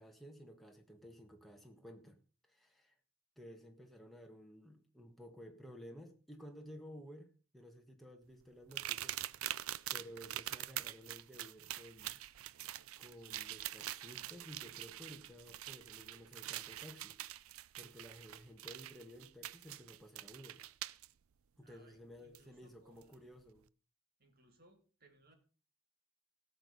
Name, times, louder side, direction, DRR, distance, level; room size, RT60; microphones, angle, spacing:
voice 1, 0.0-2.2 2.4-2.9 3.4-9.5 9.9-12.2 13.0-17.2 17.8-20.6 21.6-23.6, equal, ahead, 2 dB, 1.6 m, -54 dB
sound 1, 8.7-21.1 22.3-22.4 23.0-23.1, right 14 dB, 75° right, 0.5 m, -44 dB
voice 2, 21.6-23.2 24.2-25.3, right 1 dB, 45° right, 5 dB, 2.5 m, -67 dB
17.0 x 6.7 x 5.4 m, 0.38 s
head